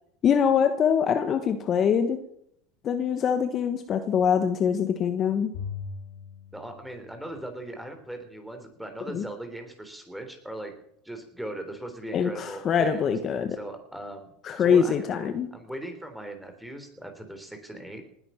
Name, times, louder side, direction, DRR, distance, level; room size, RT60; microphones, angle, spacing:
voice 1, 0.2-2.2 2.8-5.5 9.1-9.2 12.1-13.6 14.4-15.5, left 7 dB, 35° left, 8 dB, 1.3 m, -24 dB
Bowed string instrument, 5.5-7.9, left 6 dB, 75° left, 3.4 m, -40 dB
voice 2, 6.5-10.7 11.0-13.1 13.5-14.3 14.6-15.2 15.5-18.0, right 1 dB, 5° right, 6 dB, 3.5 m, -39 dB
19.5 x 9.8 x 5.8 m, 0.71 s
supercardioid pair, 110°, 0 cm